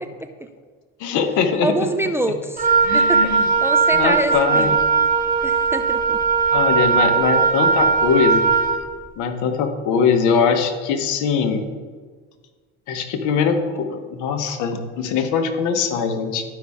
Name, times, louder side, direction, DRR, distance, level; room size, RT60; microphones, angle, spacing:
voice 1, 1.0-1.7 2.3-2.4 2.8-3.4 3.9-4.8 6.5-8.5 9.2-11.6 12.9-16.4, left 6 dB, 70° left, 6 dB, 1.2 m, -21 dB
voice 2, 1.6-4.8 5.4-6.2, right 1 dB, 10° right, 7 dB, 0.4 m, -26 dB
Wind instrument woodwind instrument, 2.6-8.8, right 5 dB, 25° right, 1.4 m, -18 dB
12.0 x 5.4 x 3.6 m, 1.5 s
supercardioid pair, 100°, 31 cm